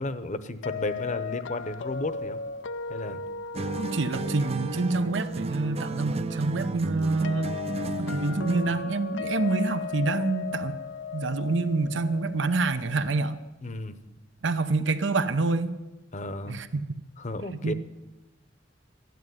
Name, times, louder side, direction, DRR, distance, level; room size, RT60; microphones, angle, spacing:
voice 1, 0.0-2.4 2.9-3.3 13.6-14.0 16.1-16.6 17.2-17.7, left 2 dB, 40° left, 12 dB, 0.9 m, -33 dB
sound 1, 0.6-13.5, left 5 dB, 75° left, 0.5 m, -37 dB
sound 2, 3.5-8.9, right 2 dB, 35° right, 0.5 m, -33 dB
voice 2, 3.8-7.6 8.0-10.8 11.1-13.4 14.4-15.8 16.5-16.8 17.5-17.7, right 3 dB, 75° right, 10 dB, 0.8 m, -27 dB
13.5 x 9.4 x 9.5 m, 1.1 s
head